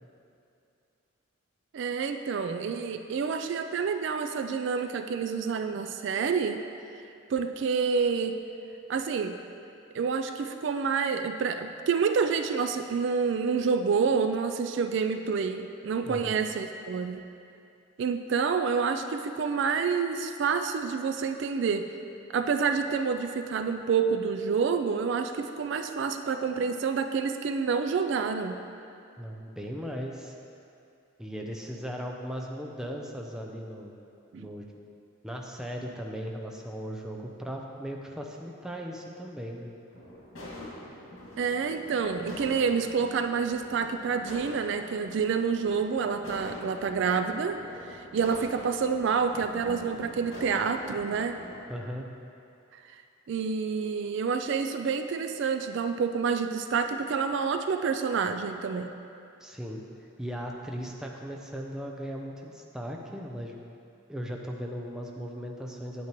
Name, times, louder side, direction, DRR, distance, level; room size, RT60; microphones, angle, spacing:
voice 1, 1.7-6.6 7.3-8.4 8.9-9.4 9.9-17.2 18.0-21.9 22.3-28.6 34.3-34.5 41.4-51.4 52.7-53.0 53.3-58.9, right 5 dB, 60° right, 7 dB, 0.3 m, -28 dB
voice 2, 16.1-16.4 29.2-30.3 31.2-34.0 34.4-34.6 35.2-39.7 51.7-52.1 59.4-59.8 60.2-63.5 64.1-66.1, equal, 5° right, 0 dB, 0.5 m, -37 dB
sound 1, 39.9-51.6, left 1 dB, 85° left, 2.1 m, -44 dB
9.0 x 8.4 x 3.0 m, 2.6 s
head